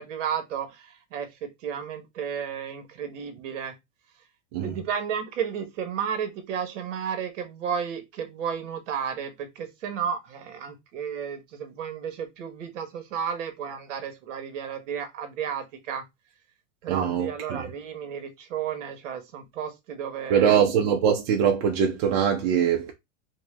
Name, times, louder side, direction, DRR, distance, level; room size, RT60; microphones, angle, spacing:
voice 1, 0.0-3.7 4.6-16.1 16.8-20.6, right 8 dB, 70° right, 1.3 m, -33 dB
voice 2, 16.9-17.6 20.3-22.9, right 8 dB, 50° right, 0.8 m, -22 dB
4.4 x 2.3 x 3.3 m
supercardioid pair, 145°, 39 cm